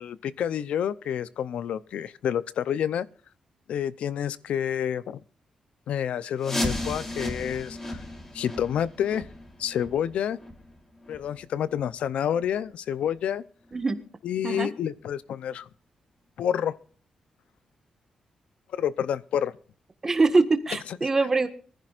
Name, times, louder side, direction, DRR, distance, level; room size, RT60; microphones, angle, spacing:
voice 1, 0.0-3.1 3.7-5.2 5.9-8.0 8.3-9.2 9.6-10.4 11.1-13.4 14.2-15.7 16.4-16.8 18.7-19.5, left 9 dB, 85° left, 0.6 m, -28 dB
sound 1, 6.4-12.0 12.3-12.4 13.0-13.1 13.7-13.8 14.3-14.4, left 1 dB, 20° left, 3.2 m, -35 dB
voice 2, 20.0-21.5, right 3 dB, 20° right, 1.5 m, -23 dB
24.0 x 15.0 x 2.5 m
wide cardioid pair, 160°, 2 cm